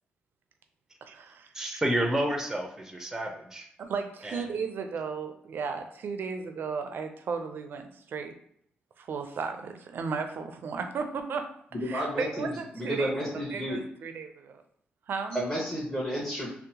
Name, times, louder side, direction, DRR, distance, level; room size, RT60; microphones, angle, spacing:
voice 1, 1.0-1.8 3.8-8.4 9.0-11.6 11.8-13.1 13.5-14.6 15.1-15.4, right 5 dB, 65° right, 6 dB, 0.4 m, -35 dB
voice 2, 1.5-3.7 4.2-4.6, right 1 dB, 10° right, 3 dB, 0.6 m, -30 dB
voice 3, 11.8-12.5 12.7-13.8 15.3-16.5, equal, 10° left, -6 dB, 1.0 m, -31 dB
2.7 x 2.1 x 2.8 m, 0.68 s
cardioid pair, 65°, 4 cm